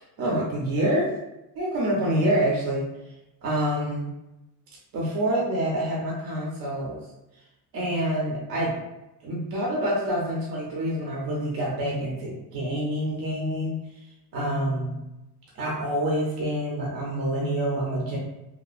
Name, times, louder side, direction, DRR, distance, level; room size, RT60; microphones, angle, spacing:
voice 1, 0.2-1.1 1.6-2.8 3.4-4.1 4.9-7.0 7.7-8.8 9.2-13.8 14.3-15.0 15.6-18.2, right 1 dB, 55° right, -3 dB, 0.8 m, -27 dB
3.0 x 2.2 x 2.4 m, 0.95 s
cardioid pair, 120°, 43 cm